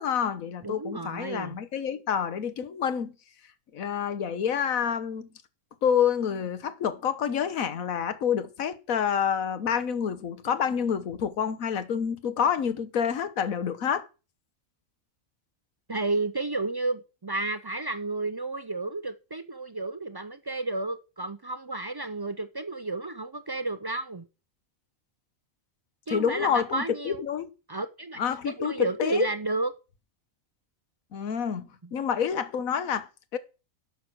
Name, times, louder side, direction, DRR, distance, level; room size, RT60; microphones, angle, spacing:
voice 1, 0.0-3.1 3.7-5.3 5.8-14.1 26.1-27.5 28.2-29.3 31.1-31.6 31.9-33.4, left 8 dB, 80° left, 1.5 m, -28 dB
voice 2, 0.6-1.6 15.9-24.3 26.1-27.2 27.7-29.7, right 2 dB, 40° right, 0.3 m, -32 dB
11.0 x 6.8 x 6.1 m
omnidirectional pair, 1.4 m